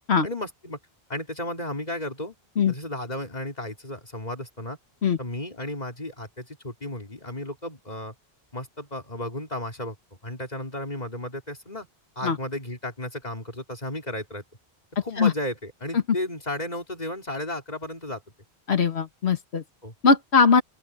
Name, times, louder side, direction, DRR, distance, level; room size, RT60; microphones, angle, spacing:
voice 1, 0.2-0.8 1.1-2.4 2.7-4.8 5.2-8.1 8.5-9.9 10.2-11.9 12.2-14.4 15.0-18.2 19.8-19.9, left 1 dB, 40° left, 4.1 m, -34 dB
voice 2, 18.7-19.6 20.0-20.6, left 5 dB, 85° left, 1.8 m, -20 dB
open air
omnidirectional pair, 1.1 m